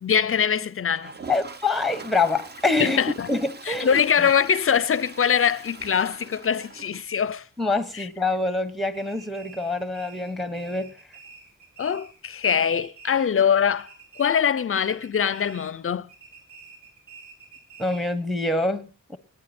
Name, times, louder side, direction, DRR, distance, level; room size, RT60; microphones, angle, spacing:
voice 1, 0.0-1.1 2.8-3.3 3.7-7.4 7.9-8.1 11.8-13.9 14.2-16.1, left 7 dB, 40° left, 0.5 m, -23 dB
Toilet flush, 0.9-7.6 7.9-8.0 8.2-8.3 8.6-8.7 11.2-11.3 12.6-12.7, right 4 dB, 30° right, 0.8 m, -43 dB
voice 2, 1.3-3.0 3.3-4.1 7.6-11.0 17.8-19.2, left 3 dB, ahead, 0.9 m, -25 dB
sound 1, 8.9-12.3 12.6-13.5 13.7-15.8 16.1-18.2, right 5 dB, 65° right, 5.1 m, -48 dB
19.0 x 9.4 x 4.3 m
wide cardioid pair, 165°, 33 cm